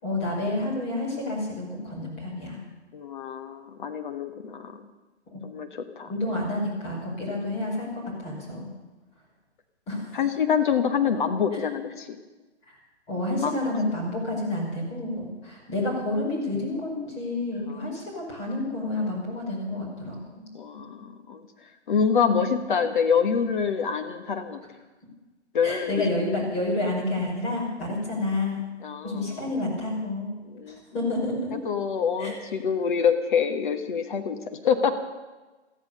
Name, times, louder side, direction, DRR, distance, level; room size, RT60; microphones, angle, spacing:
voice 1, 0.0-2.6 6.1-8.7 9.9-10.2 12.7-12.8 13.1-20.5 22.2-22.5 25.6-28.6 29.0-30.3 30.9-31.5 32.2-32.3, left 2 dB, 20° left, -2 dB, 5.3 m, -29 dB
voice 2, 2.9-4.7 5.4-6.1 8.5-8.6 10.1-12.1 13.4-13.5 17.7-17.9 20.5-21.4 21.9-24.6 25.5-26.1 28.8-29.4 30.5-30.8 31.6-34.9, left 6 dB, 45° left, 7 dB, 1.3 m, -26 dB
14.5 x 14.0 x 6.7 m, 1.2 s
hypercardioid pair, 145°, 35 cm